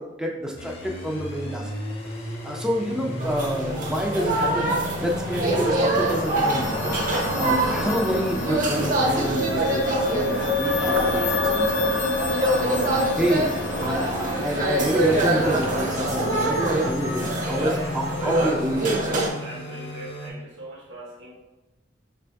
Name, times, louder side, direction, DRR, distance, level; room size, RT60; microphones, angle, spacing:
voice 1, 0.0-1.7 2.4-6.8 7.4-11.9 12.6-13.5 13.7-19.0, equal, 5° right, -1 dB, 0.4 m, -28 dB
sound 1, 0.6-20.3, equal, 30° left, 0.7 m, -34 dB
sound 2, 3.2-19.3, right 2 dB, 45° right, 0.7 m, -26 dB
sound 3, 5.8-18.5, left 2 dB, 75° left, 0.7 m, -29 dB
voice 2, 19.4-21.3, equal, 70° right, -1 dB, 0.9 m, -41 dB
5.2 x 2.6 x 3.3 m, 1.1 s
head